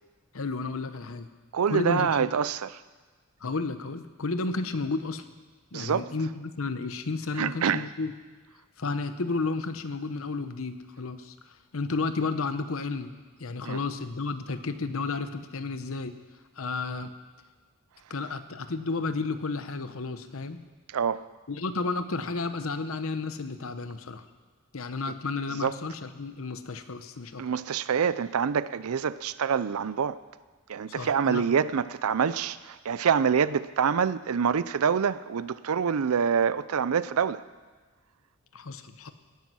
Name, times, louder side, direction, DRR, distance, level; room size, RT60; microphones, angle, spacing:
voice 1, 0.3-1.3 1.7-2.3 3.4-5.3 5.7-8.1 8.8-13.1 13.4-16.2 16.6-17.1 18.1-20.6 21.5-24.3 24.7-27.4 30.9-31.5 38.5-39.1, left 3 dB, 65° left, 0.9 m, -32 dB
voice 2, 1.5-2.7 5.7-6.1 7.4-7.8 13.6-13.8 20.9-21.3 25.6-25.7 27.4-30.2 30.7-37.4, right 7 dB, 80° right, 0.5 m, -26 dB
18.0 x 9.5 x 6.2 m
head